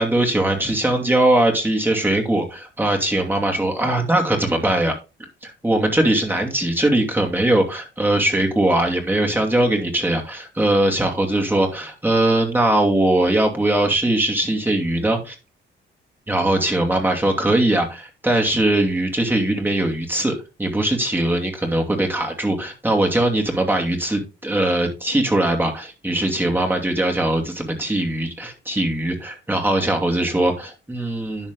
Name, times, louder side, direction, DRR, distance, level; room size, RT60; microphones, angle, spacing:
voice 1, 0.0-5.0 5.4-15.4 16.3-20.3 20.6-31.5, right 1 dB, 10° right, 1 dB, 2.6 m, -20 dB
10.5 x 6.6 x 3.9 m, 0.29 s
cardioid pair, 90°, 20 cm